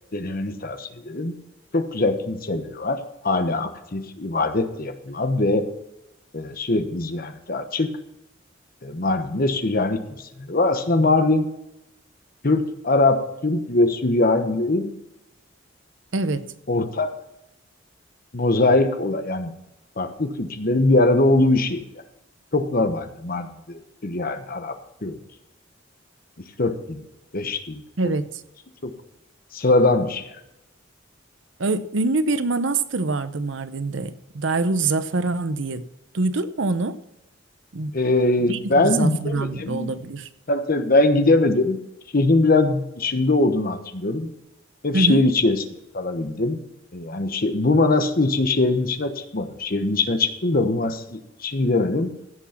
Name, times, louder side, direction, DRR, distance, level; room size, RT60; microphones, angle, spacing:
voice 1, 0.1-1.4 1.7-5.6 6.3-7.9 8.8-11.5 12.4-14.9 16.7-17.2 18.3-19.5 20.0-21.8 22.5-25.2 26.6-27.0 27.3-28.1 28.8-28.9 29.5-30.3 37.9-39.9 40.5-41.8 42.1-44.3 44.8-45.6 45.9-46.6 46.9-52.1, left 2 dB, 50° left, 8 dB, 1.1 m, -22 dB
voice 2, 16.1-16.5 28.0-28.3 31.6-35.9 36.1-37.0 37.7-37.9 38.5-40.3 44.9-45.2, right 3 dB, 70° right, 13 dB, 0.8 m, -24 dB
15.5 x 6.2 x 5.7 m, 0.87 s
head